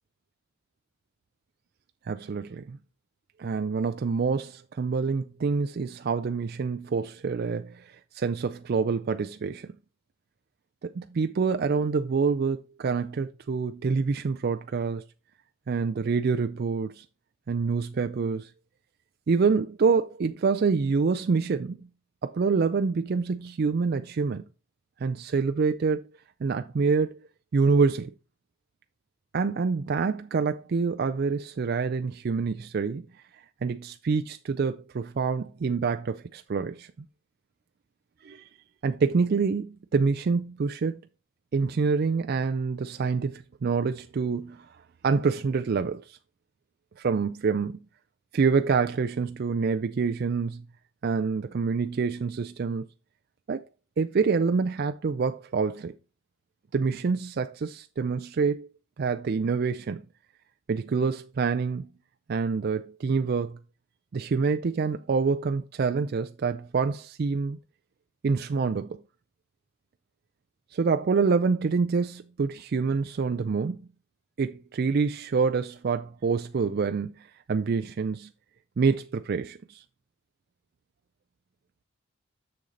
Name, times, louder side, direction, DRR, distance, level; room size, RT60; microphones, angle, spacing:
voice 1, 2.1-2.8 3.4-9.7 10.8-15.0 15.7-17.0 17.5-18.5 19.3-21.8 22.2-24.4 25.0-26.0 26.4-27.2 27.5-28.1 29.3-33.1 33.6-36.9 38.2-38.5 38.8-41.0 41.5-44.7 45.0-46.2 47.0-47.8 48.3-50.6 51.0-52.8 53.5-53.6 54.0-55.9 56.7-58.7 59.0-60.0 60.7-61.9 62.3-63.6 64.1-67.6 68.2-69.0 70.7-73.8 74.4-78.3 78.8-79.8, right 5 dB, 50° right, 0.4 m, -26 dB
6.9 x 6.4 x 3.8 m
head